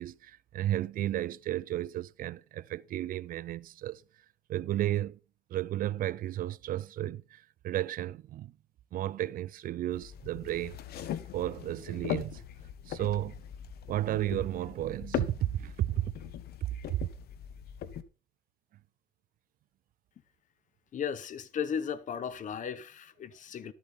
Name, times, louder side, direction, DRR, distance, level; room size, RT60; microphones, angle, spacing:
voice 1, 0.0-4.0 4.5-5.2 5.5-8.5 8.9-10.8 11.3-12.4 12.9-13.4 13.9-16.2 16.9-17.1, right 13 dB, 55° right, 0.5 m, -33 dB
sound 1, 9.9-18.0, left 10 dB, 70° left, 1.1 m, -40 dB
voice 2, 20.9-23.7, left 7 dB, 50° left, 1.0 m, -35 dB
12.5 x 8.5 x 4.2 m
cardioid pair, 110°, 17 cm